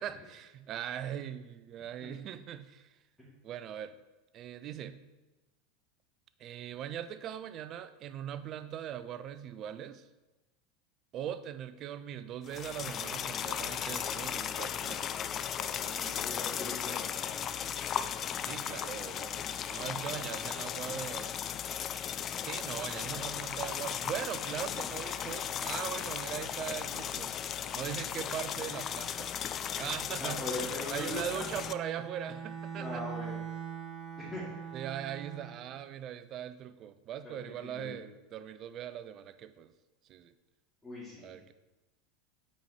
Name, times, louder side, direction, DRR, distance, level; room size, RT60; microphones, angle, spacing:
voice 1, 0.0-2.9 3.4-4.0 4.3-5.0 6.4-10.1 11.1-15.1 18.2-21.4 22.2-27.4 27.7-29.3 29.8-30.4 30.9-33.0 34.7-39.7 40.1-40.3 41.2-41.5, right 10 dB, 40° right, 12 dB, 0.4 m, -40 dB
sound 1, 12.5-31.7, left 9 dB, 35° left, 0.3 m, -36 dB
voice 2, 15.5-17.3 19.4-20.0 30.2-31.4 32.7-33.4 34.2-34.4 37.2-38.0 40.8-41.4, left 1 dB, 10° left, -10 dB, 2.5 m, -41 dB
Bowed string instrument, 31.2-35.7, right 7 dB, 25° right, 1.5 m, -42 dB
8.5 x 4.3 x 4.4 m, 1.1 s
figure-of-eight pair, 80°, 0 cm